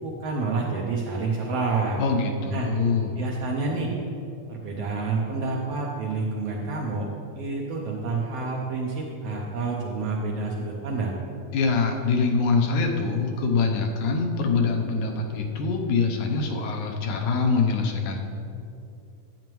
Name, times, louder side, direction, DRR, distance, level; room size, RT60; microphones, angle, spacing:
voice 1, 0.0-2.0 2.5-2.7 3.2-3.9 4.5-7.1 7.3-11.2, right 3 dB, 75° right, -1 dB, 1.5 m, -28 dB
voice 2, 2.0-3.2 11.5-18.2, left 4 dB, 85° left, 2 dB, 2.3 m, -24 dB
10.5 x 8.8 x 3.1 m, 2.6 s
omnidirectional pair, 3.4 m